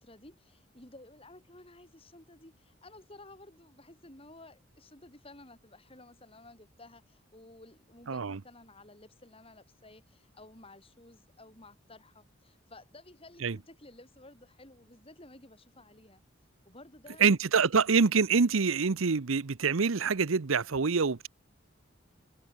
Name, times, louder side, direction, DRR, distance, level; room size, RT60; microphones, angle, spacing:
voice 1, 0.0-16.2 16.6-17.5, left 2 dB, 25° left, 4.3 m, -54 dB
voice 2, 8.1-8.4 13.4-13.6 17.2-21.3, right 5 dB, 80° right, 0.8 m, -26 dB
head